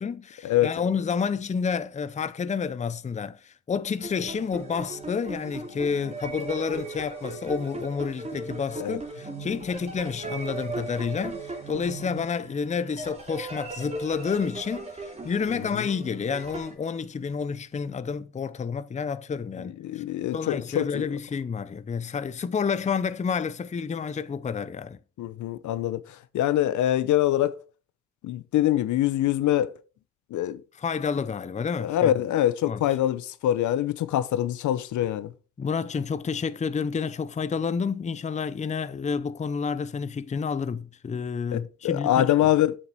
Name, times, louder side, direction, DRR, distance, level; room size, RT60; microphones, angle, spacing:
voice 1, 0.0-20.0 20.3-25.0 30.8-32.1 32.7-32.8 35.6-42.5, left 6 dB, 25° left, 0.6 m, -29 dB
sound 1, 3.9-16.7, right 3 dB, 20° right, 3.1 m, -38 dB
voice 2, 19.8-21.1 25.2-26.0 26.3-27.5 28.2-29.8 30.3-30.6 31.8-35.3 41.5-42.8, left 12 dB, 75° left, 0.8 m, -24 dB
7.7 x 6.5 x 4.6 m
cardioid pair, 90°, 30 cm